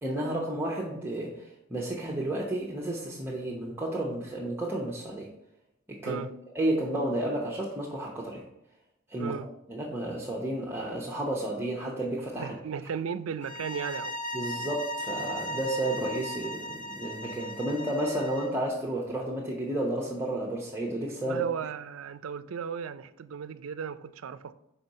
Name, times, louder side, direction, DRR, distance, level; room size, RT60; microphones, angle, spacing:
voice 1, 0.0-5.3 5.9-6.2 6.5-8.4 9.1-9.4 9.7-12.5 14.3-21.4, right 1 dB, 10° right, 0.9 m, -32 dB
voice 2, 12.4-14.1 21.2-24.5, right 7 dB, 70° right, 0.4 m, -35 dB
sound 1, 13.4-18.6, equal, 35° left, 0.6 m, -37 dB
5.4 x 4.4 x 5.3 m
head